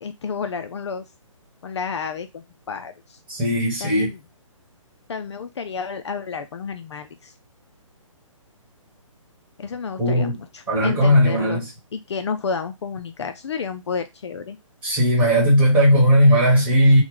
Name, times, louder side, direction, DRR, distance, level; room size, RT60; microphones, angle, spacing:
voice 1, 0.0-1.0 1.6-3.2 3.8-4.2 5.1-7.3 9.6-11.6 11.9-14.6, left 5 dB, 55° left, 0.4 m, -31 dB
voice 2, 3.3-4.1 10.0-10.3 10.7-11.6 14.8-17.0, equal, 10° right, 1.1 m, -17 dB
3.0 x 2.1 x 3.6 m
hypercardioid pair, 165°, 17 cm